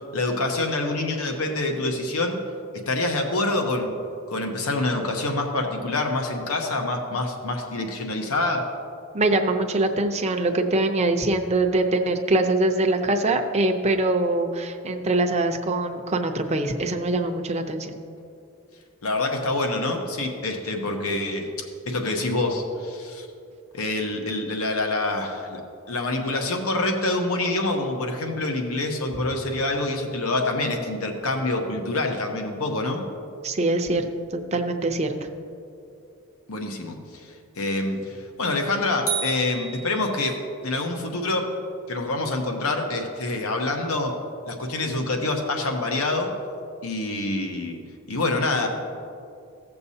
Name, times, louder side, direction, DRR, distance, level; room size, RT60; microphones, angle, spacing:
voice 1, 0.1-2.4 2.7-3.9 4.3-8.6 19.0-21.5 21.9-23.3 23.7-25.6 25.9-33.0 36.5-41.5 41.9-44.2 44.5-46.3 46.8-47.8 48.1-48.7, left 2 dB, 90° left, 3 dB, 1.0 m, -26 dB
voice 2, 9.1-17.9 33.4-34.1 34.3-35.3, right 2 dB, 30° right, 5 dB, 0.6 m, -23 dB
sound 1, 39.1-40.5, right 6 dB, 65° left, 1.6 m, -31 dB
15.5 x 6.8 x 2.8 m, 2.5 s
head